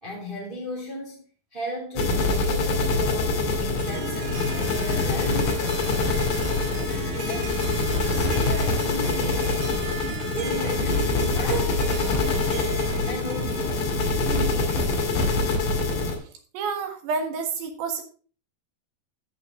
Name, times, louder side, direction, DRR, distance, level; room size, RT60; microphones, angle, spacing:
voice 1, 0.0-1.2 1.5-6.3 7.2-7.6 8.0-9.6 10.3-12.4 13.1-14.9, equal, 15° right, 2.7 m, -36 dB
sound 1, 2.0-16.2, left 3 dB, 50° left, 3.5 m, -25 dB
Harp, 3.5-14.0, right 5 dB, 60° right, 2.6 m, -38 dB
voice 2, 16.5-18.0, right 5 dB, 80° right, 3.7 m, -29 dB
14.0 x 5.8 x 3.7 m
omnidirectional pair, 4.8 m